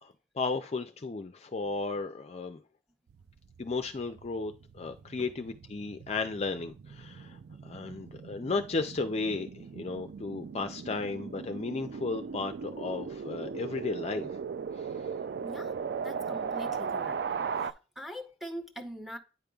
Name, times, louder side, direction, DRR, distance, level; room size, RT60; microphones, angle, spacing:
voice 1, 0.0-2.6 3.6-7.4 7.6-14.3, left 3 dB, 35° left, 0.4 m, -34 dB
sound 1, 3.1-17.7, right 6 dB, 60° right, 0.3 m, -38 dB
voice 2, 15.4-15.7 16.0-17.2 17.6-19.2, equal, ahead, 0.7 m, -43 dB
9.0 x 5.2 x 2.3 m
head